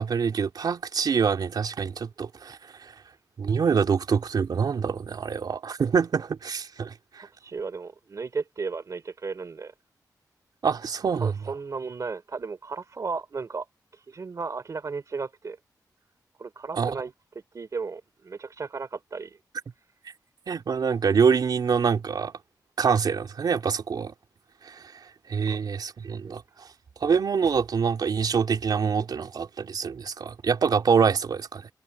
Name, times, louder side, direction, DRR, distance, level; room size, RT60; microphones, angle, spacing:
voice 1, 0.0-2.9 3.4-7.3 10.6-11.3 16.7-16.9 20.5-22.3 22.8-24.1 24.6-26.7 27.0-31.7, right 6 dB, 70° right, 3.2 m, -25 dB
voice 2, 7.2-9.7 11.2-13.7 13.9-15.6 16.4-17.1 17.5-19.4 26.2-26.7, right 4 dB, 50° right, 3.2 m, -35 dB
wide cardioid pair, 105°, 7 cm